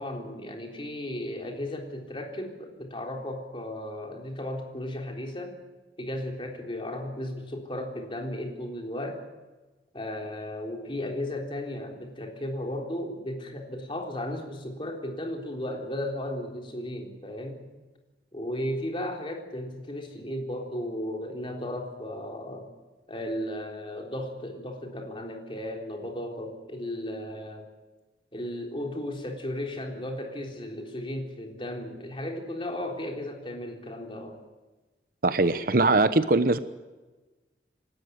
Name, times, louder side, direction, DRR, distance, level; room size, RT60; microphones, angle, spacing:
voice 1, 0.0-5.6 6.0-9.3 9.9-17.6 18.3-22.7 23.1-27.7 28.3-34.4, left 1 dB, 30° left, 2 dB, 3.8 m, -35 dB
voice 2, 35.2-36.6, right 2 dB, 55° right, 12 dB, 1.0 m, -21 dB
27.0 x 13.0 x 9.6 m, 1.2 s
head